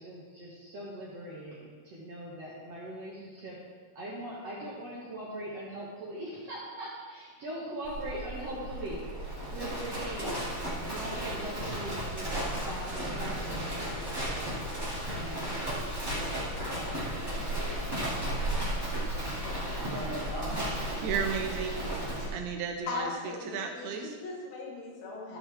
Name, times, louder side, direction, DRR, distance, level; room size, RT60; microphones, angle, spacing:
voice 1, 0.0-3.6 3.9-9.0 9.5-10.5 10.8-12.4 12.6-14.5 15.1-15.6 16.1-16.4 16.7-16.9 17.2-18.4, right 1 dB, 55° right, -6 dB, 1.9 m, -41 dB
Livestock farm animals working animals, 7.8-22.3, right 1 dB, 10° right, 1.0 m, -34 dB
voice 2, 21.0-21.8 22.3-23.1 23.5-24.2, right 6 dB, 80° right, 4 dB, 2.7 m, -33 dB
voice 3, 22.9-25.4, left 3 dB, 75° left, -3 dB, 3.8 m, -38 dB
13.5 x 7.1 x 3.5 m, 1.5 s
omnidirectional pair, 4.7 m